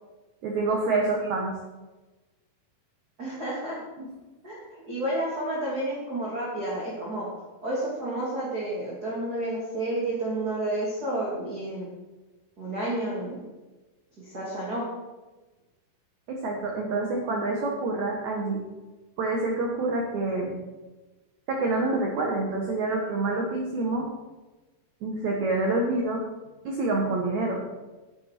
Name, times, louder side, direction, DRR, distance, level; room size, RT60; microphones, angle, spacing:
voice 1, 0.4-1.5 4.0-4.1 16.3-18.6 19.2-20.6 21.5-24.1 25.0-26.2 26.6-27.6, right 2 dB, 80° right, 0 dB, 1.6 m, -27 dB
voice 2, 3.2-3.8 4.4-7.3 7.6-11.9 12.6-13.4 14.2-14.9, right 1 dB, 30° right, -6 dB, 1.9 m, -30 dB
11.0 x 9.7 x 4.5 m, 1.1 s
omnidirectional pair, 5.3 m